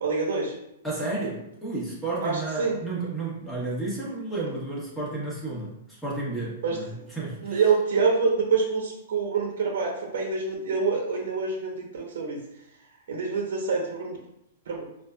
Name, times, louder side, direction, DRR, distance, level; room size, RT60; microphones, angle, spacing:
voice 1, 0.0-0.5 2.2-2.8 6.6-6.8 7.4-12.4 13.1-14.2 14.7-14.8, right 4 dB, 70° right, 1 dB, 0.7 m, -26 dB
voice 2, 0.8-7.6, right 2 dB, 5° left, -6 dB, 1.1 m, -32 dB
4.2 x 2.5 x 2.2 m, 0.81 s
hypercardioid pair, 145°, 0 cm